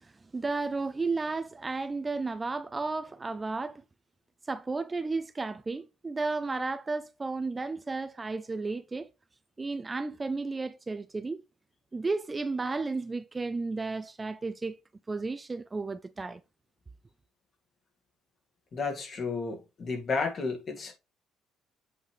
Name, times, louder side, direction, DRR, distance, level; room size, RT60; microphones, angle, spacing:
voice 1, 0.0-3.8 4.5-9.1 9.6-11.4 11.9-14.8 15.1-16.4, right 3 dB, 20° right, 0.5 m, -33 dB
voice 2, 18.7-20.9, left 4 dB, 40° left, 2.2 m, -32 dB
8.0 x 5.5 x 3.1 m
cardioid pair, 125°, 0 cm